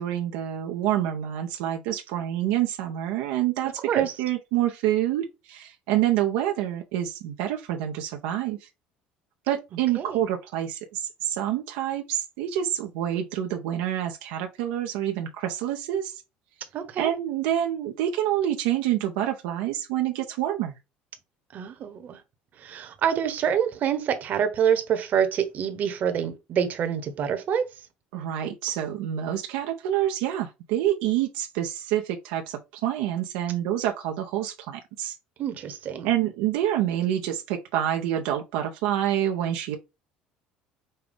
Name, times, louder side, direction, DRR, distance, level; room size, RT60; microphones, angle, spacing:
voice 1, 0.0-8.7 9.5-16.2 17.0-20.7 28.1-35.2 36.0-39.8, right 11 dB, 85° right, 0.6 m, -27 dB
voice 2, 3.6-4.1 9.7-10.2 16.7-17.1 21.5-22.2 22.6-27.7 35.4-36.1, right 8 dB, 50° right, 1.0 m, -27 dB
5.4 x 2.3 x 3.5 m
supercardioid pair, 90°, 4 cm